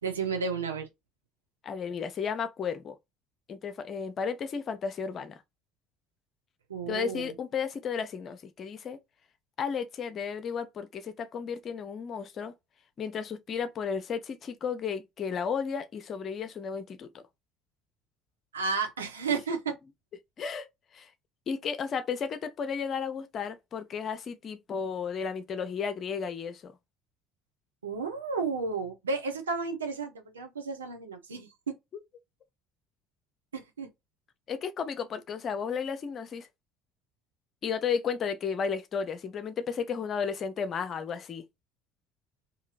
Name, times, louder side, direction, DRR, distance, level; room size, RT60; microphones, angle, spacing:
voice 1, 0.0-0.9 6.7-7.3 18.5-19.8 27.8-31.8 33.5-33.9, right 4 dB, 80° right, 0.7 m, -32 dB
voice 2, 1.6-3.0 3.5-5.4 6.9-9.0 9.6-12.5 13.0-17.2 20.4-20.7 20.9-21.1 21.5-26.7 34.5-36.5 37.6-41.5, left 6 dB, 45° left, 0.6 m, -33 dB
2.9 x 2.7 x 2.4 m
figure-of-eight pair, 55°, 0 cm